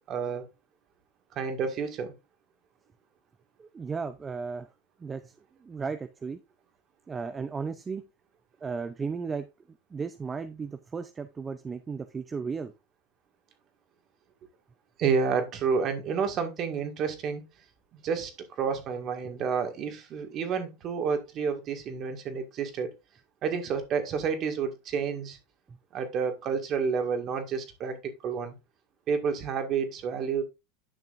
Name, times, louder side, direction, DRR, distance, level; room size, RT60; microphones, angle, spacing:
voice 1, 0.1-0.4 1.3-2.1 15.0-17.4 18.0-18.3 18.6-22.9 23.4-25.4 25.9-28.5 29.1-30.4, right 6 dB, 40° right, 1.8 m, -30 dB
voice 2, 3.6-4.7 5.0-5.3 5.6-6.4 7.1-8.0 8.6-9.5 9.9-12.7 25.7-25.8, right 5 dB, 20° right, 0.5 m, -35 dB
10.5 x 5.9 x 2.5 m
supercardioid pair, 120°, 0 cm